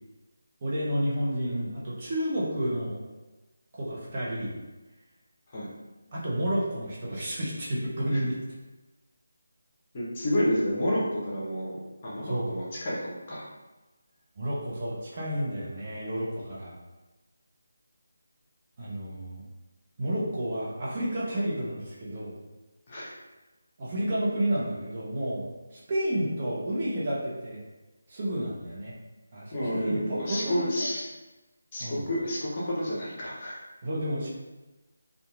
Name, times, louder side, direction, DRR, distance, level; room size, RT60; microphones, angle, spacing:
voice 1, 0.6-3.0 3.7-4.6 6.1-8.4 12.2-12.5 14.4-16.8 18.8-19.4 20.0-22.4 23.8-25.5 25.7-27.6 28.1-28.9 29.3-29.5 29.8-30.9 31.8-32.0 33.8-34.3, right 1 dB, 35° right, -7 dB, 0.7 m, -30 dB
voice 2, 9.9-11.7 12.0-13.5 22.9-23.2 29.5-31.1 31.7-33.6, equal, 30° left, -7 dB, 0.8 m, -30 dB
2.8 x 2.5 x 2.3 m, 1.1 s
figure-of-eight pair, 160°, 0 cm